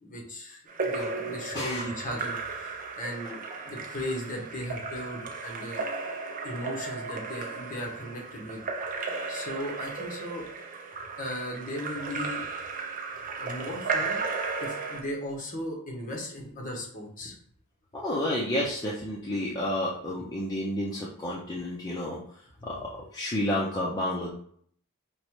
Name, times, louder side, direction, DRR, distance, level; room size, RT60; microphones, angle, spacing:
voice 1, 0.0-5.8 6.4-8.6 9.3-10.5 11.2-12.4 13.4-14.2 14.6-17.3, equal, 40° left, -1 dB, 1.0 m, -37 dB
Splash splatter / Drip / Trickle dribble, 0.7-15.0, right 4 dB, 40° right, 0.5 m, -35 dB
voice 2, 1.5-1.9 17.9-22.2 22.6-24.3, left 1 dB, 20° left, -5 dB, 0.5 m, -30 dB
5.2 x 2.1 x 3.0 m, 0.62 s
head